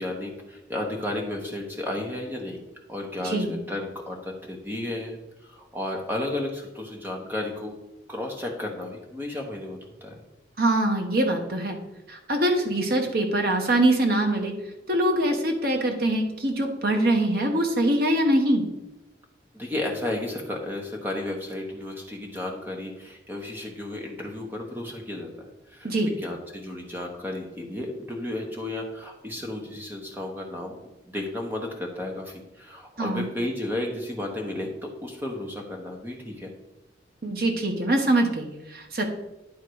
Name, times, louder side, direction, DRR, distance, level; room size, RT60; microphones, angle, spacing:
voice 1, 0.0-2.6 2.9-7.7 8.1-10.2 19.5-30.7 31.0-36.5, left 1 dB, 10° right, 1 dB, 1.2 m, -33 dB
voice 2, 10.6-11.8 12.1-14.5 14.9-18.6 25.8-26.1 33.0-33.3 37.2-39.0, right 1 dB, 55° right, 4 dB, 1.1 m, -23 dB
10.5 x 3.7 x 4.7 m, 1.0 s
head